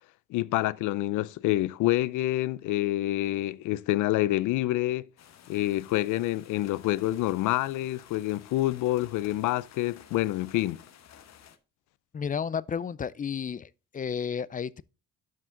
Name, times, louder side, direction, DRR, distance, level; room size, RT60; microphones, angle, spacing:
voice 1, 0.3-5.0 5.5-10.8, left 16 dB, 90° left, 0.5 m, -27 dB
sound 1, 5.2-11.6, left 9 dB, 60° left, 1.1 m, -53 dB
voice 2, 12.1-14.8, left 7 dB, 30° left, 0.4 m, -32 dB
12.0 x 4.9 x 3.7 m
cardioid pair, 90°, 30 cm